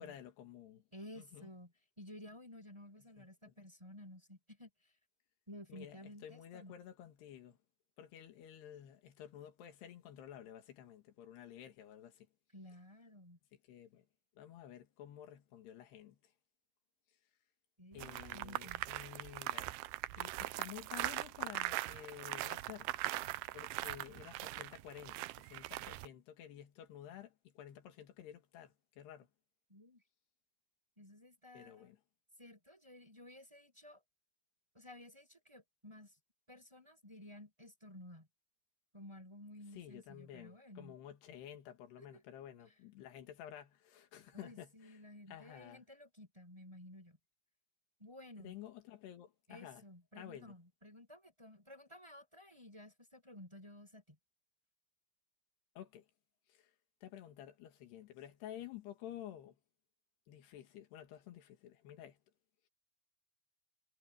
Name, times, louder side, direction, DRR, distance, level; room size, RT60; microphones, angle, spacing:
voice 1, 0.0-0.8 1.2-1.5 3.2-3.5 5.7-7.6 8.0-12.3 13.7-14.0 14.4-16.2 17.9-19.8 20.2-22.9 23.5-29.3 31.5-32.0 39.7-44.9 45.3-45.8 48.4-49.8 50.2-50.5 55.8-56.1 56.5-56.7 57.0-59.6 60.3-62.2, left 11 dB, 80° left, 4.0 m, -52 dB
voice 2, 0.9-4.9 5.5-6.7 12.5-13.4 17.8-18.8 29.7-30.0 31.0-31.9 32.4-34.0 34.7-36.1 36.5-38.3 38.9-40.9 42.0-42.2 42.7-42.8 44.3-47.2 48.0-48.6 49.5-54.2, left 1 dB, 5° right, 5.0 m, -54 dB
sound 1, 18.0-26.1, right 18 dB, 85° right, 2.4 m, -41 dB
omnidirectional pair, 4.6 m